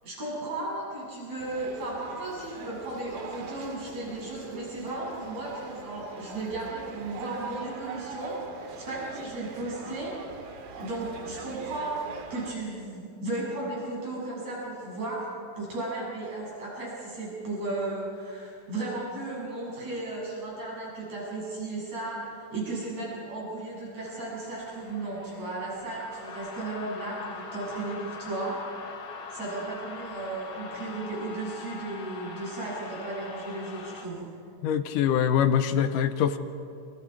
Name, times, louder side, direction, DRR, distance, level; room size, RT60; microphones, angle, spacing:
voice 1, 0.0-10.1 10.8-12.0 12.3-15.2 15.6-22.2 22.5-28.6 29.3-34.3, right 2 dB, 50° right, -5 dB, 9.2 m, -35 dB
sound 1, 1.4-12.6, right 5 dB, 90° right, 3.4 m, -44 dB
sound 2, 24.2-34.1, left 4 dB, 50° left, 2.7 m, -43 dB
voice 2, 34.6-36.4, left 8 dB, 75° left, 10 dB, 2.4 m, -24 dB
29.0 x 26.5 x 4.8 m, 2.5 s
omnidirectional pair, 3.9 m